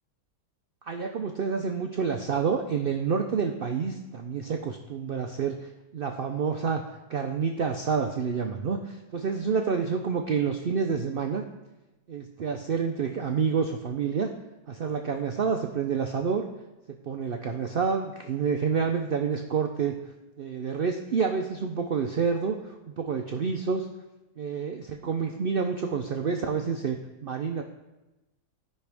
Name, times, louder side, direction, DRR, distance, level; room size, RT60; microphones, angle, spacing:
voice 1, 0.9-6.8 7.1-11.4 12.1-14.3 14.7-16.4 16.9-19.9 20.4-23.9 24.4-27.0 27.2-27.6, right 6 dB, 90° right, 4 dB, 0.4 m, -28 dB
13.5 x 5.6 x 3.4 m, 1.0 s
omnidirectional pair, 1.7 m